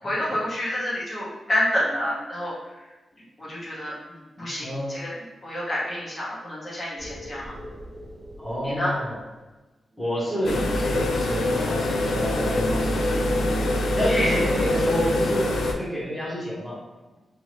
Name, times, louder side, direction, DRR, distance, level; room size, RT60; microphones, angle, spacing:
voice 1, 0.0-2.5 3.4-5.1 5.4-7.5 8.6-9.0 14.1-14.4, left 1 dB, 30° left, -7 dB, 0.9 m, -28 dB
voice 2, 4.6-5.0 8.4-9.2 10.0-13.2 13.9-16.8, equal, ahead, -7 dB, 0.9 m, -29 dB
sound 1, 7.0-9.1 10.0-15.4, right 1 dB, 30° right, 0.7 m, -34 dB
sound 2, 10.4-15.7, left 2 dB, 85° left, 0.4 m, -24 dB
2.6 x 2.6 x 3.2 m, 1.1 s
wide cardioid pair, 125°, 0 cm